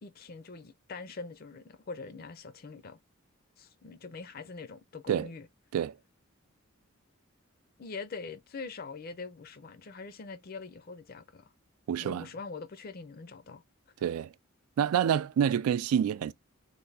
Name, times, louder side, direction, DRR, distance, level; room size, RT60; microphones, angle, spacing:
voice 1, 0.0-3.0 3.6-5.5 7.8-11.5 12.0-13.6, left 4 dB, 45° left, 0.5 m, -43 dB
voice 2, 11.9-12.2 14.0-14.3 14.8-16.3, right 9 dB, 90° right, 0.3 m, -27 dB
3.4 x 2.6 x 3.9 m
head